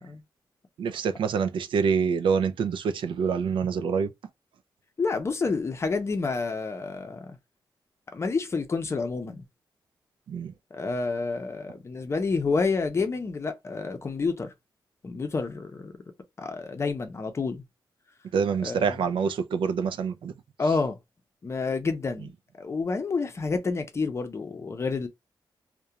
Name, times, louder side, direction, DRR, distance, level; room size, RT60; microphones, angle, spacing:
voice 1, 0.8-4.1 10.3-10.5 18.3-20.3, right 6 dB, 85° right, 0.4 m, -26 dB
voice 2, 5.0-7.4 8.1-9.4 10.7-14.5 15.0-15.9 16.4-17.6 18.6-18.9 20.6-21.0 21.4-25.1, left 4 dB, 35° left, 0.5 m, -29 dB
2.4 x 2.1 x 2.8 m
wide cardioid pair, 150°, 8 cm